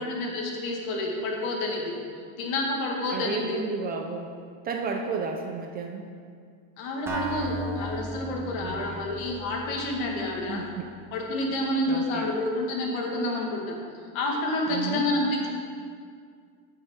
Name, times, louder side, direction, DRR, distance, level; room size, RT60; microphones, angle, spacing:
voice 1, 0.0-1.9 2.4-3.6 6.8-10.7 11.1-13.8 14.1-15.5, left 1 dB, 75° left, 0 dB, 1.9 m, -29 dB
voice 2, 3.1-4.3 4.6-6.1 8.6-9.0 10.5-10.9 11.9-12.3 14.7-15.1, right 5 dB, 25° right, 3 dB, 0.4 m, -32 dB
Acoustic guitar, 7.1-10.9, right 1 dB, 5° right, 0.8 m, -36 dB
8.6 x 5.5 x 5.8 m, 2.2 s
supercardioid pair, 145°, 42 cm